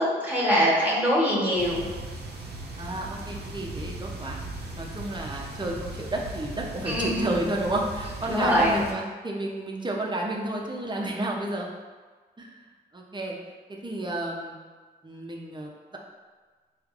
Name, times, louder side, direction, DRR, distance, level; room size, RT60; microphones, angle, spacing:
voice 1, 0.2-1.8 6.9-7.3 8.3-8.8, equal, 10° right, -6 dB, 1.4 m, -23 dB
sound 1, 1.6-8.9, right 2 dB, 60° right, 0.7 m, -38 dB
voice 2, 2.8-4.4 4.7-11.7 12.4-12.6 12.9-13.4 13.7-14.6 15.0-16.0, right 1 dB, 25° right, -1 dB, 0.7 m, -31 dB
4.5 x 2.5 x 2.5 m, 1.4 s
cardioid pair, 50°, 19 cm